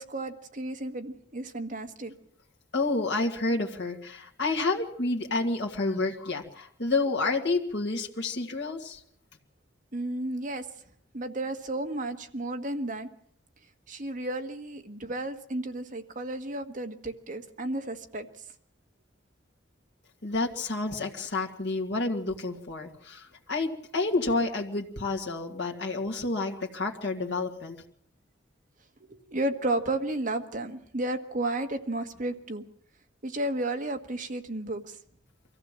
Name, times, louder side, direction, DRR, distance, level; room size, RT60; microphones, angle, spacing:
voice 1, 0.0-2.1 9.9-10.6 11.1-13.1 13.9-18.3 29.1-32.6 33.2-35.0, right 1 dB, 45° right, 5 dB, 1.7 m, -33 dB
voice 2, 2.7-9.0 20.2-27.8, left 3 dB, 65° left, 0 dB, 2.1 m, -29 dB
24.0 x 15.0 x 7.5 m, 0.67 s
head